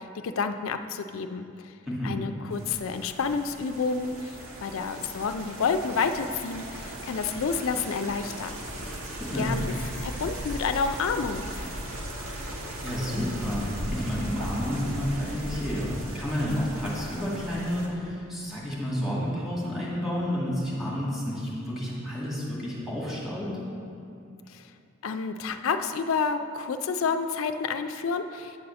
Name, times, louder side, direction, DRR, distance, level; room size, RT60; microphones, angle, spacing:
voice 1, 0.0-1.7 2.0-8.6 9.3-9.7 10.0-11.4 24.5-24.6 25.0-28.6, left 5 dB, 70° left, 8 dB, 0.4 m, -29 dB
voice 2, 1.9-2.2 9.1-9.5 12.8-23.5, equal, ahead, -6 dB, 2.0 m, -30 dB
sound 1, 2.5-17.9, right 1 dB, 80° right, 1.4 m, -37 dB
9.0 x 4.1 x 6.7 m, 2.6 s
head